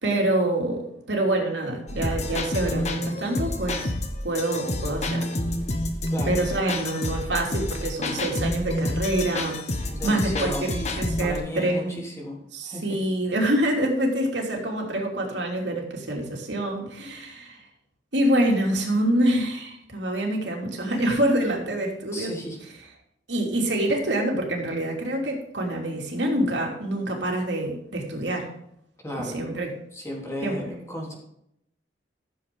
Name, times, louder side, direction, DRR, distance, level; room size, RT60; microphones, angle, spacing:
voice 1, 0.0-3.9 4.2-5.3 6.3-9.6 10.0-12.0 12.5-17.6 18.1-22.3 23.3-28.5 29.2-29.7 30.4-30.8, right 1 dB, 80° right, 0 dB, 3.1 m, -26 dB
sound 1, 1.9-11.4, left 1 dB, 40° left, 1.3 m, -29 dB
voice 2, 9.9-10.7 11.2-12.4 12.6-12.8 22.1-22.6 29.0-29.4 29.9-31.1, left 1 dB, 15° left, -2 dB, 3.4 m, -34 dB
14.5 x 7.5 x 3.8 m, 0.74 s
head